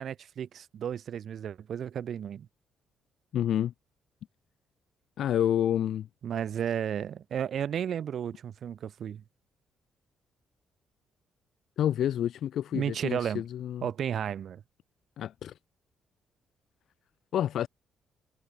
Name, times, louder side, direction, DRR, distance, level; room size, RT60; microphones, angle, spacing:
voice 1, 0.0-2.5 6.2-9.2 12.7-13.4 13.8-14.6, right 9 dB, 60° right, 0.7 m, -33 dB
voice 2, 3.3-3.7 5.2-6.1 11.8-13.9 15.2-15.6 17.3-17.7, left 10 dB, 70° left, 0.4 m, -28 dB
cardioid pair, 90°, 0 cm